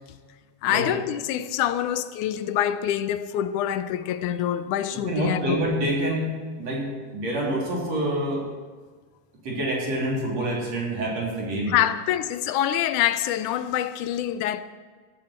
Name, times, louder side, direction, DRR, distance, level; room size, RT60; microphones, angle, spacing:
voice 1, 0.6-5.6 11.7-14.6, left 11 dB, 80° left, 2.1 m, -25 dB
voice 2, 5.0-6.3 6.6-8.4 9.4-11.7, right 1 dB, 55° right, 4.5 m, -27 dB
16.0 x 15.0 x 4.4 m
omnidirectional pair, 3.6 m